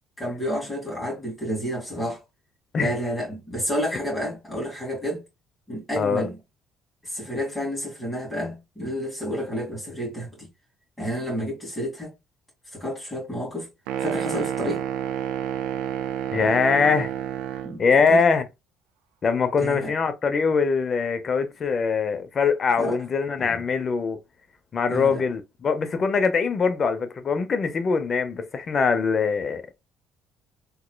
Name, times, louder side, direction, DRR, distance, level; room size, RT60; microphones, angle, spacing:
voice 1, 0.2-2.2 2.7-5.2 5.7-6.4 7.0-10.5 11.0-12.1 12.7-13.7 14.0-14.8 17.6-18.2 19.6-19.9 22.8-23.0 23.4-23.6 24.9-25.2, equal, 15° left, 2.1 m, -30 dB
voice 2, 6.0-6.3 16.3-17.1 17.8-18.4 19.2-24.2 24.7-29.6, left 5 dB, 45° left, 0.6 m, -22 dB
sound 1, 13.9-17.8, right 10 dB, 90° right, 0.5 m, -29 dB
3.6 x 3.0 x 2.2 m
supercardioid pair, 85°, 0 cm